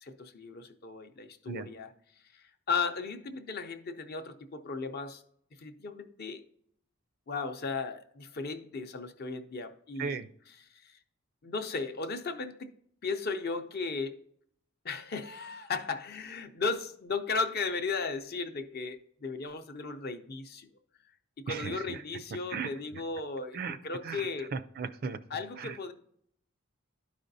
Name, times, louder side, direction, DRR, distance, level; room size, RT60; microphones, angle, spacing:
voice 1, 0.0-1.9 2.3-5.2 5.6-6.4 7.3-10.2 10.6-10.9 11.4-12.7 13.0-14.1 14.8-20.7 21.4-23.6 23.8-24.5 25.3-25.9, left 4 dB, 45° left, 7 dB, 0.6 m, -36 dB
voice 2, 21.5-22.0 22.5-22.7 23.5-23.8 24.0-25.2 25.6-25.8, right 5 dB, 45° right, 12 dB, 0.3 m, -36 dB
12.0 x 5.0 x 2.7 m, 0.66 s
head